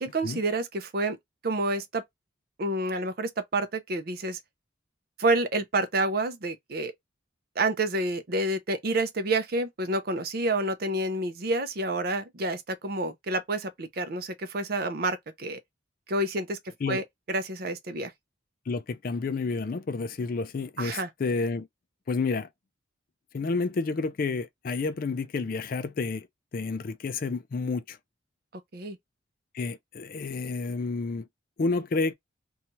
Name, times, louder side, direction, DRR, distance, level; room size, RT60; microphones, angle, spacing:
voice 1, 0.0-1.2 1.4-2.0 2.6-4.4 5.2-6.9 7.6-15.6 16.1-16.6 16.9-18.1 20.8-21.1 28.7-29.0, right 2 dB, 50° right, 0.5 m, -29 dB
voice 2, 18.7-21.7 22.1-22.5 23.3-26.3 26.5-28.0 29.5-31.3 31.6-32.1, left 4 dB, 45° left, 0.4 m, -30 dB
2.7 x 2.3 x 2.9 m
head